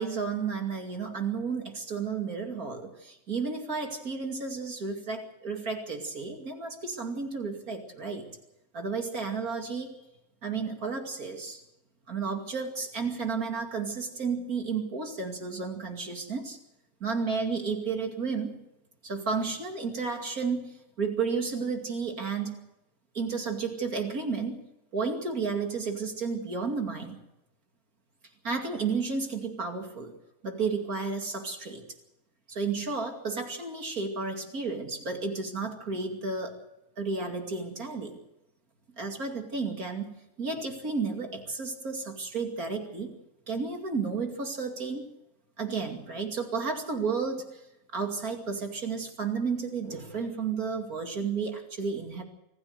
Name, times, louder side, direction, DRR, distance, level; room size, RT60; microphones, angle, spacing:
voice 1, 0.0-8.3 8.7-9.9 10.4-11.6 12.1-16.6 17.0-18.5 19.0-22.5 23.1-24.6 24.9-27.2 28.4-30.1 30.4-31.8 32.5-36.6 37.0-38.2 38.9-43.1 43.5-45.0 45.6-47.6 47.9-52.2, right 4 dB, 70° right, 3 dB, 3.0 m, -32 dB
26.0 x 15.0 x 6.7 m, 0.89 s
omnidirectional pair, 1.6 m